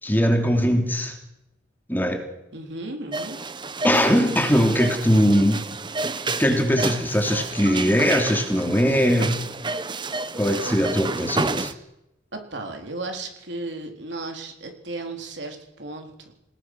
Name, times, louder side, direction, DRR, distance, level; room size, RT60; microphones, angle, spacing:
voice 1, 0.0-1.2 1.9-2.2 3.8-5.7 6.4-9.4 10.4-11.7, equal, 10° left, 3 dB, 3.0 m, -20 dB
voice 2, 2.5-3.4 12.3-16.3, right 2 dB, 65° right, 3 dB, 3.9 m, -35 dB
sound 1, 3.1-11.7, right 3 dB, 25° right, 1.0 m, -30 dB
28.5 x 18.5 x 6.3 m, 0.86 s
head